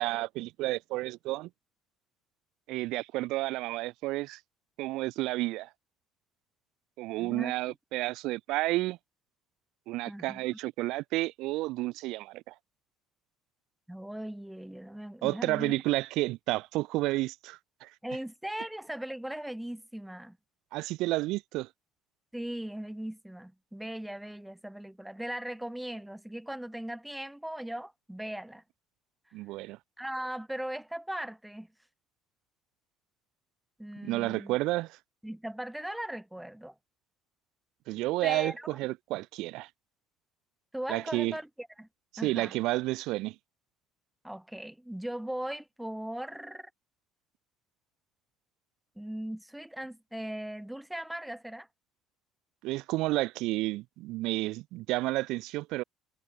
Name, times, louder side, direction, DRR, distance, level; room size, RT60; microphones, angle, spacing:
voice 1, 0.0-1.5 2.7-4.4 4.8-5.7 7.0-9.0 9.9-12.5 15.2-17.9 20.7-21.7 29.3-29.8 34.0-35.0 37.9-39.7 40.9-41.4 42.2-43.3 52.6-55.8, right 19 dB, 75° right, 1.6 m, -31 dB
voice 2, 7.2-7.5 10.1-10.4 13.9-15.8 18.0-20.4 22.3-28.6 30.0-31.7 33.8-34.6 35.2-36.7 38.2-38.7 40.7-41.9 42.2-42.5 44.2-46.7 49.0-51.7, right 1 dB, 5° right, 5.8 m, -38 dB
supercardioid pair, 100°, 0 cm